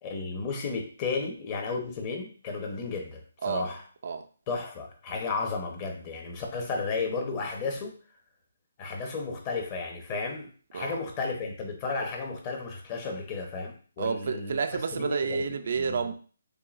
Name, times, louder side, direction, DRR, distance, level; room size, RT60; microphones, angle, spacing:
voice 1, 0.0-3.8 4.5-8.0 8.8-14.6 14.9-15.4 15.7-16.0, left 4 dB, 30° left, 0.9 m, -33 dB
voice 2, 3.4-3.7 4.0-4.3 10.7-11.0 14.0-16.1, right 5 dB, 60° right, 0.4 m, -30 dB
6.6 x 2.3 x 2.5 m
hypercardioid pair, 155°, 0 cm